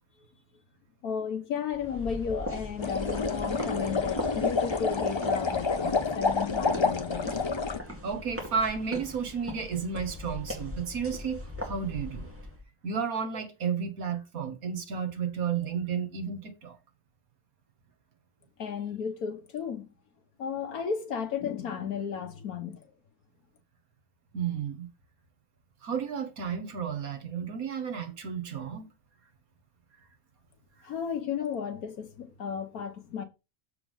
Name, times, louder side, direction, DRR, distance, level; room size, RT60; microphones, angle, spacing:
voice 1, 1.0-7.3 18.6-19.9 20.4-22.9 30.8-33.2, left 7 dB, 85° left, 1.6 m, -34 dB
sound 1, 1.7-12.6, left 1 dB, 10° right, 2.2 m, -40 dB
sound 2, 2.8-7.8, left 4 dB, 45° left, 0.3 m, -28 dB
voice 2, 8.0-12.3 12.8-16.8 24.3-24.9 25.8-28.9, right 6 dB, 75° right, 1.9 m, -32 dB
7.1 x 4.4 x 5.3 m
omnidirectional pair, 1.5 m